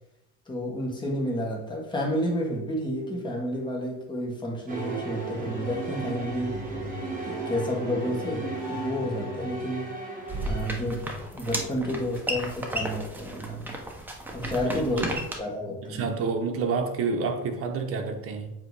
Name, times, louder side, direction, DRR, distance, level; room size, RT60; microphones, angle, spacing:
voice 1, 0.5-6.5 7.2-9.9 10.4-11.1 11.3-13.7 14.3-16.1, equal, 15° left, -1 dB, 1.5 m, -30 dB
sound 1, 4.7-11.2, right 3 dB, 25° right, 1.6 m, -34 dB
sound 2, 10.3-15.3, right 1 dB, 5° right, 0.7 m, -34 dB
voice 2, 15.8-18.5, right 4 dB, 40° right, 5 dB, 1.0 m, -28 dB
7.7 x 3.0 x 4.8 m, 0.88 s
cardioid pair, 140°, 33 cm